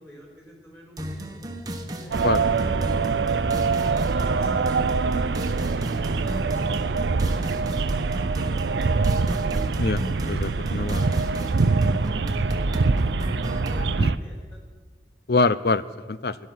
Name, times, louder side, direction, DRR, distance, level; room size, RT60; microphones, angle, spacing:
voice 1, 0.0-3.6 4.2-8.7 8.9-9.3 11.3-14.6, equal, 15° left, -2 dB, 4.1 m, -50 dB
sound 1, 1.0-13.9, equal, 20° right, 1.2 m, -34 dB
sound 2, 2.1-14.2, right 4 dB, 80° right, 0.5 m, -24 dB
voice 2, 10.3-11.1 14.0-14.1 15.3-16.4, left 3 dB, 60° left, 16 dB, 0.5 m, -24 dB
17.5 x 11.0 x 6.1 m, 1.4 s
head